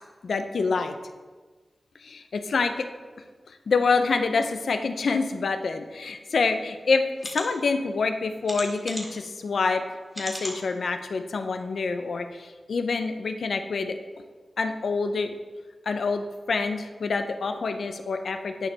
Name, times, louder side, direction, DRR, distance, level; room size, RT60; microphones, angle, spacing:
voice 1, 0.2-0.9 2.0-2.9 3.7-7.0 7.3-9.8 10.2-14.0 14.6-15.3 15.9-18.7, left 4 dB, 85° left, 7 dB, 0.6 m, -26 dB
sound 1, 6.4-6.5 7.2-7.4 8.4-9.2 10.1-10.6 11.1-11.2 11.6-11.7, equal, 10° right, 1.7 m, -36 dB
9.8 x 5.4 x 4.0 m, 1.4 s
wide cardioid pair, 125°, 0 cm